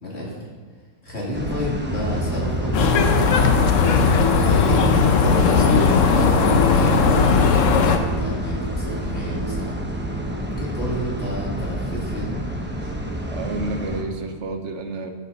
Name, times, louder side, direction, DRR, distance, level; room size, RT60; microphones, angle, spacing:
voice 1, 0.0-0.3 1.0-3.6 4.3-4.8 5.2-9.8 10.4-12.4, left 1 dB, 45° left, -5 dB, 2.8 m, -31 dB
sound 1, 1.3-14.0, equal, 10° right, 0.6 m, -29 dB
sound 2, 1.8-14.4, right 3 dB, 75° right, 2.3 m, -35 dB
sound 3, 2.7-8.0, left 5 dB, 60° left, 1.0 m, -17 dB
voice 2, 13.3-15.1, right 3 dB, 55° right, 6 dB, 1.1 m, -30 dB
13.5 x 7.3 x 4.0 m, 1.5 s
omnidirectional pair, 1.6 m